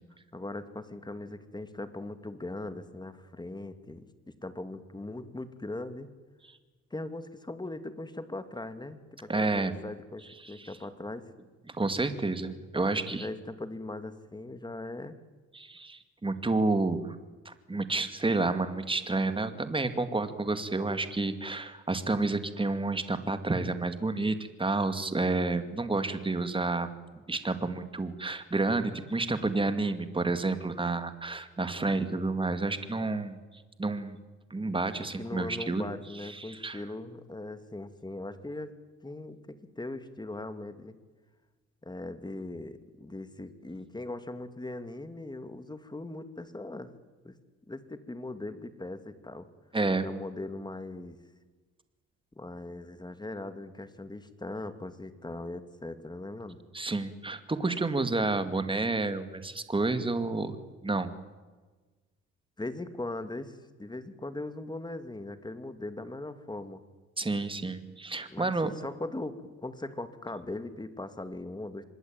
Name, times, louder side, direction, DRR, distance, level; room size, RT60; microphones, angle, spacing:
voice 1, 0.3-4.1 4.4-6.1 6.9-11.3 12.8-15.1 35.2-38.7 39.0-40.9 41.8-46.9 47.2-47.4 47.7-49.5 50.0-51.2 52.3-56.6 62.6-66.8 68.3-71.8, left 2 dB, 15° left, 10 dB, 2.5 m, -40 dB
voice 2, 9.3-9.7 10.4-10.7 11.8-13.3 15.5-17.2 17.4-26.9 27.3-33.4 33.8-34.2 34.5-35.8 36.2-36.8 49.7-50.1 56.7-60.6 60.8-61.1 67.2-68.7, right 3 dB, 15° right, 10 dB, 2.4 m, -30 dB
25.5 x 21.0 x 9.0 m, 1.3 s
cardioid pair, 90°, 30 cm